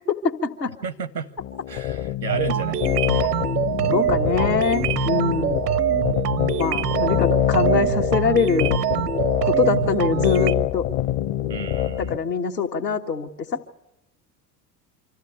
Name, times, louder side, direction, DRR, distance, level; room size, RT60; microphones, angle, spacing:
voice 1, 0.1-0.7 3.9-5.7 6.6-8.7 9.4-10.9 12.1-13.3, left 5 dB, 80° left, 2 dB, 1.5 m, -23 dB
voice 2, 0.8-1.3 1.7-2.8 3.1-3.5 11.5-12.2, right 5 dB, 90° right, 18 dB, 1.1 m, -33 dB
sound 1, 1.4-12.2, left 12 dB, 45° left, 0.9 m, -25 dB
sound 2, 2.3-10.5, right 11 dB, 75° right, 0.7 m, -24 dB
25.5 x 14.0 x 9.8 m, 0.88 s
figure-of-eight pair, 70°, 49 cm